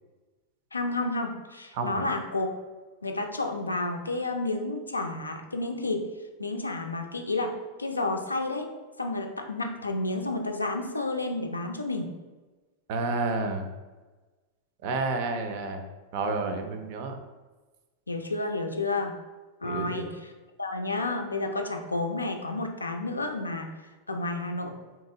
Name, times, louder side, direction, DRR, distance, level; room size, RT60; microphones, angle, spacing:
voice 1, 0.7-2.5 3.0-6.1 6.4-8.7 9.0-12.1 18.1-19.2 19.6-20.1 20.6-23.7 24.1-24.8, left 2 dB, 80° left, 4 dB, 0.4 m, -31 dB
voice 2, 1.7-2.1 12.9-13.7 14.8-15.8 16.1-17.2 19.6-20.1, right 3 dB, 50° right, 6 dB, 0.5 m, -30 dB
3.7 x 2.9 x 2.7 m, 1.2 s
figure-of-eight pair, 90°, 0 cm